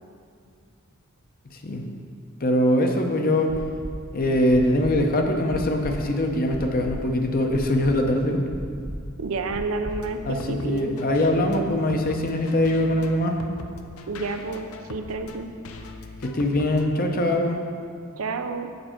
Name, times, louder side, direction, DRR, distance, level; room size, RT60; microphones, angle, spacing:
voice 1, 2.4-3.5 4.1-8.4 10.3-13.3 16.2-17.6, left 1 dB, 45° left, 3 dB, 0.7 m, -22 dB
sound 1, 3.5-3.9 4.5-4.9 5.5-5.9 6.5-7.0 7.5-8.0 8.5-9.0 9.5-10.0 10.5-10.6, right 1 dB, 20° right, 0.4 m, -35 dB
voice 2, 9.2-10.9 14.1-15.5 18.2-18.7, right 3 dB, 85° right, 8 dB, 0.5 m, -30 dB
sound 2, 9.9-16.9, left 3 dB, 85° left, 0.5 m, -41 dB
6.8 x 6.6 x 4.4 m, 2.3 s
head